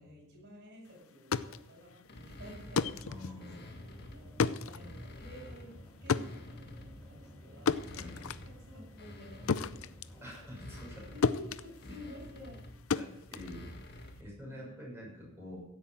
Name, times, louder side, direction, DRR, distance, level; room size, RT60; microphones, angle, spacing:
voice 1, 0.0-10.2 10.9-12.6 14.1-14.8, left 1 dB, 55° right, -2 dB, 7.6 m, -52 dB
sound 1, 1.1-11.0 11.2-14.2, left 5 dB, 70° left, 0.6 m, -35 dB
sound 2, 2.1-4.3 4.7-7.1 7.6-14.3, left 1 dB, 50° left, 1.8 m, -50 dB
sound 3, 3.0-10.3, equal, 10° left, 2.9 m, -53 dB
voice 2, 3.1-3.8 4.7-4.9 7.9-8.2 10.2-11.1 11.8-11.9 12.9-15.6, left 1 dB, 10° right, -4 dB, 6.8 m, -47 dB
15.5 x 8.7 x 7.5 m, 0.87 s
head